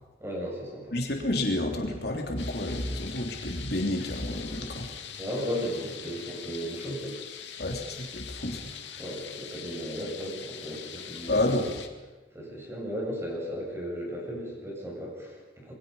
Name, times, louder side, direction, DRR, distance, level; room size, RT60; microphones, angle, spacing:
voice 1, 0.2-0.9 5.2-7.2 9.0-11.7 12.3-15.7, equal, 15° right, -2 dB, 7.5 m, -35 dB
voice 2, 0.9-4.9 7.6-8.6 11.3-11.7, left 1 dB, 60° left, 1 dB, 3.3 m, -29 dB
sound 1, 2.4-11.9, left 8 dB, 75° left, 2.3 m, -43 dB
27.5 x 21.5 x 5.6 m, 1.2 s
head